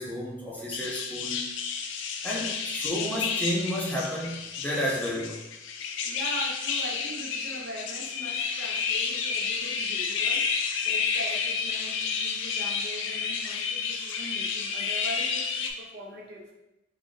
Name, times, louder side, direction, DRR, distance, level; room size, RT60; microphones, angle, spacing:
voice 1, 0.0-1.5 2.2-5.4, equal, 5° left, -3 dB, 0.5 m, -31 dB
sound 1, 0.7-15.7, left 5 dB, 60° left, 0.4 m, -30 dB
voice 2, 6.0-10.4 10.8-16.5, right 1 dB, 55° right, -1 dB, 0.7 m, -41 dB
3.5 x 2.6 x 3.7 m, 0.93 s
head